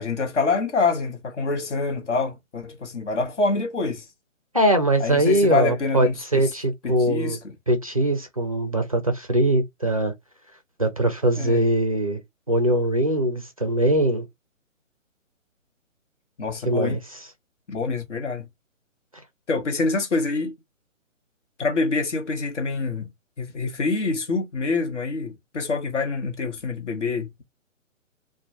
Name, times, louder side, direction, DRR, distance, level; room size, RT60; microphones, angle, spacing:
voice 1, 0.0-4.0 5.0-6.5 6.8-7.5 11.4-11.7 16.4-17.0 17.7-18.5 19.5-20.5 21.6-23.1 23.4-27.4, left 3 dB, 60° left, 0.9 m, -26 dB
voice 2, 4.5-7.4 7.7-10.1 10.8-12.2 12.5-14.3 16.7-17.3, right 1 dB, 30° right, 0.4 m, -22 dB
2.1 x 2.1 x 2.8 m
figure-of-eight pair, 140°, 40 cm